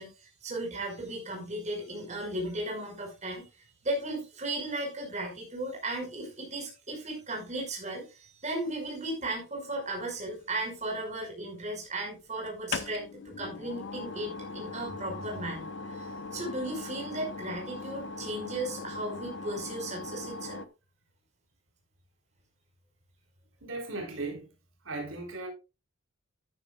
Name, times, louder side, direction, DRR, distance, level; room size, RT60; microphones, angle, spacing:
voice 1, 0.0-3.5 3.8-20.6, right 1 dB, 35° right, 5.6 m, -36 dB
sound 1, 10.3-11.1 12.5-20.7, left 3 dB, 60° left, 1.0 m, -40 dB
voice 2, 23.6-24.5 24.8-25.5, right 2 dB, 85° right, 4.2 m, -36 dB
13.5 x 10.5 x 2.5 m
head